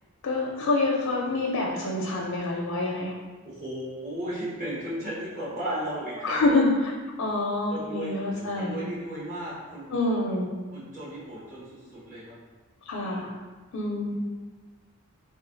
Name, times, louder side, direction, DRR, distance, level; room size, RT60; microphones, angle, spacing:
voice 1, 0.2-3.1 6.2-6.9 7.2-8.8 9.9-10.5 12.9-13.3 13.7-14.1, left 2 dB, 75° left, -2 dB, 0.5 m, -26 dB
voice 2, 3.4-6.6 7.7-9.9 10.7-12.4 13.0-13.3, right 1 dB, 40° right, -10 dB, 0.9 m, -35 dB
2.6 x 2.4 x 3.8 m, 1.3 s
head